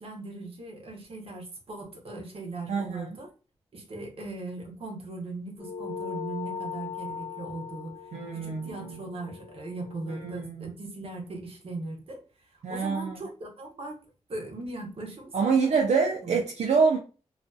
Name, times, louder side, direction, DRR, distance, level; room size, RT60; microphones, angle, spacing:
voice 1, 0.0-3.3 3.7-8.0 8.3-12.2 12.7-14.0 14.3-15.9 16.2-16.4, right 2 dB, 55° right, 0.8 m, -39 dB
voice 2, 2.7-3.1 8.1-9.0 10.1-10.7 12.6-13.2 15.3-17.0, right 5 dB, 85° right, 0.4 m, -26 dB
sound 1, 5.6-10.4, left 6 dB, 65° left, 0.6 m, -39 dB
2.5 x 2.2 x 2.5 m
wide cardioid pair, 175°, 11 cm